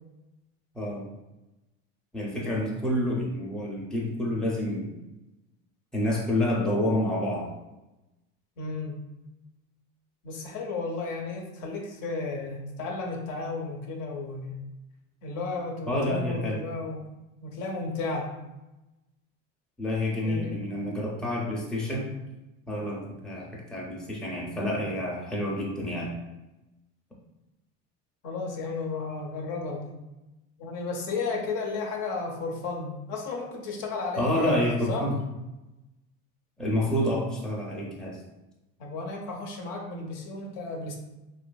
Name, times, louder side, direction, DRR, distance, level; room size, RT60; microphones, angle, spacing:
voice 1, 0.7-1.1 2.1-4.9 5.9-7.5 15.9-16.6 19.8-22.1 22.7-26.1 34.2-35.2 36.6-38.2, left 1 dB, ahead, -4 dB, 0.4 m, -28 dB
voice 2, 8.6-9.0 10.2-14.6 15.2-17.1 17.4-18.3 20.2-20.6 28.2-29.9 30.6-34.6 34.9-35.0 38.8-40.9, left 3 dB, 75° left, 2 dB, 0.6 m, -33 dB
2.6 x 2.4 x 2.2 m, 1.0 s
cardioid pair, 125°, 31 cm